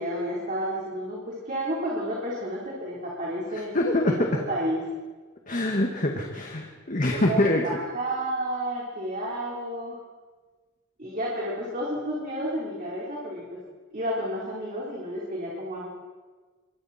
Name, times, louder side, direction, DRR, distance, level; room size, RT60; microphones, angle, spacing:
voice 1, 0.0-3.7 4.1-4.8 7.1-10.0 11.0-13.6 13.9-15.9, right 1 dB, 40° right, -5 dB, 4.1 m, -31 dB
voice 2, 3.5-4.4 5.5-7.6, left 1 dB, 40° left, 2 dB, 1.9 m, -25 dB
26.0 x 23.5 x 4.4 m, 1.4 s
head